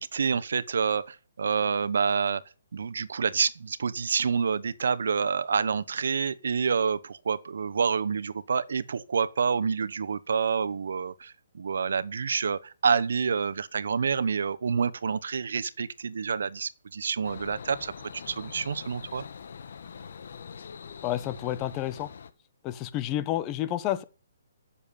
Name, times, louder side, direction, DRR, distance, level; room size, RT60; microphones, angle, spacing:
voice 1, 0.0-2.4 2.7-19.2, right 6 dB, 75° right, 1.0 m, -28 dB
sound 1, 17.2-22.3, left 6 dB, 65° left, 1.4 m, -43 dB
voice 2, 21.0-22.1 22.6-24.0, left 13 dB, 25° left, 1.1 m, -30 dB
14.0 x 7.1 x 7.0 m
hypercardioid pair, 155°, 0 cm